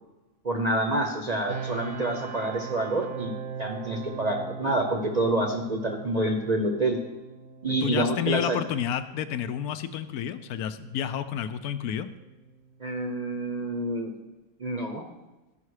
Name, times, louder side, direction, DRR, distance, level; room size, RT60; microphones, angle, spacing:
voice 1, 0.4-3.3 3.6-7.0 7.6-8.6 12.8-14.1 14.6-15.0, right 1 dB, 40° right, 2 dB, 0.6 m, -27 dB
sound 1, 1.5-14.3, right 6 dB, 65° right, 1.1 m, -42 dB
voice 2, 7.8-12.1, left 10 dB, 80° left, 11 dB, 1.0 m, -30 dB
13.5 x 5.6 x 4.8 m, 1.1 s
omnidirectional pair, 1.6 m